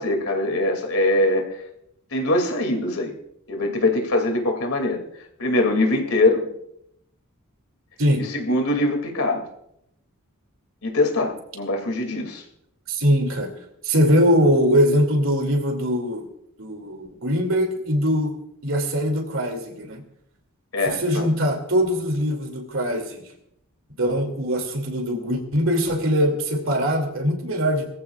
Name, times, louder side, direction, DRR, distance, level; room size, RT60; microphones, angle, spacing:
voice 1, 0.0-1.5 2.1-3.1 3.5-5.0 5.4-6.5 8.2-9.5 10.8-12.4 20.7-21.3, left 2 dB, 75° left, 4 dB, 2.5 m, -22 dB
voice 2, 12.9-13.5 13.8-16.3 16.6-18.3 18.6-20.0 21.0-23.2 24.0-27.9, equal, 65° right, 4 dB, 2.5 m, -22 dB
21.0 x 14.5 x 2.4 m, 0.77 s
head